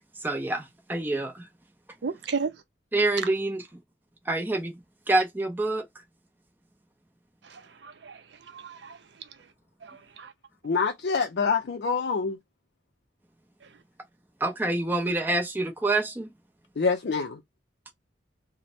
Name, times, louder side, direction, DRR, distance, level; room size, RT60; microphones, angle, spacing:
voice 1, 0.2-1.5 2.9-3.6 4.3-4.8 5.1-5.9 14.4-16.3, right 2 dB, 10° right, 0.5 m, -26 dB
voice 2, 2.0-2.5 7.5-8.2 8.5-9.0 9.8-10.3, right 5 dB, 75° right, 0.6 m, -34 dB
voice 3, 10.6-12.4 16.8-17.4, left 5 dB, 65° left, 0.4 m, -26 dB
3.1 x 2.1 x 4.2 m
head